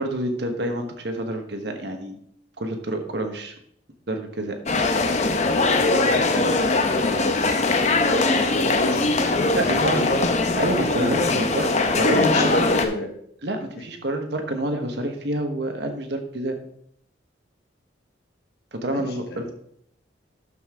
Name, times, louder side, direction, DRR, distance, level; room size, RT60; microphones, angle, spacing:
voice 1, 0.0-2.2 2.6-3.5 4.1-4.6 9.5-10.0 10.6-12.5 13.4-16.6 18.7-19.5, right 1 dB, 65° right, 5 dB, 1.3 m, -28 dB
sound 1, 4.7-12.9, left 3 dB, 40° left, 0.8 m, -21 dB
voice 2, 5.7-9.1 9.3-9.6 9.9-10.3 12.1-13.1 18.9-19.5, left 1 dB, 55° left, 4 dB, 1.3 m, -28 dB
12.5 x 5.5 x 3.7 m, 0.68 s
head